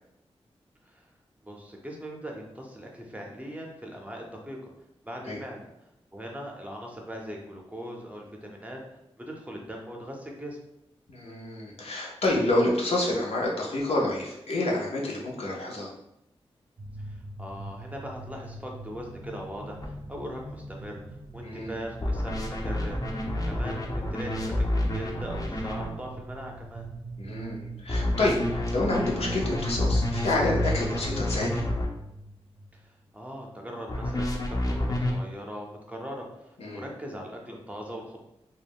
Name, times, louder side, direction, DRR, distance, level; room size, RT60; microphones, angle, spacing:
voice 1, 1.4-4.7 5.0-5.6 6.1-8.8 9.2-10.6 17.1-21.0 21.3-22.3 22.6-23.0 23.4-26.9 32.7-36.5 36.7-38.2, equal, 15° right, 0 dB, 0.6 m, -40 dB
voice 2, 11.1-15.9 21.4-21.8 27.2-31.6 36.6-36.8, left 2 dB, 75° left, -3 dB, 0.6 m, -28 dB
sound 1, 16.8-32.7, right 2 dB, 55° right, 0.5 m, -40 dB
sound 2, 19.8-19.9 22.0-25.9 27.9-31.9 33.9-35.2, left 1 dB, 35° left, 0.5 m, -29 dB
2.3 x 2.0 x 3.5 m, 0.84 s
cardioid pair, 60°, 11 cm